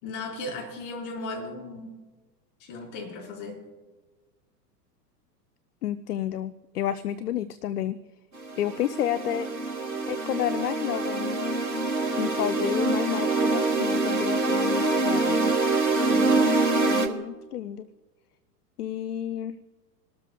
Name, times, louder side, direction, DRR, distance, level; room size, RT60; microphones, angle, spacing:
voice 1, 0.0-2.0 2.6-3.6, left 2 dB, 50° left, 1 dB, 4.3 m, -36 dB
voice 2, 5.8-8.0 8.6-9.5 10.1-11.7 12.2-15.6 16.1-17.9 18.8-19.6, left 11 dB, 70° left, 13 dB, 0.7 m, -31 dB
sound 1, 8.4-17.1, right 3 dB, 85° right, 1.3 m, -25 dB
27.5 x 13.0 x 2.2 m, 1.3 s
figure-of-eight pair, 95°, 49 cm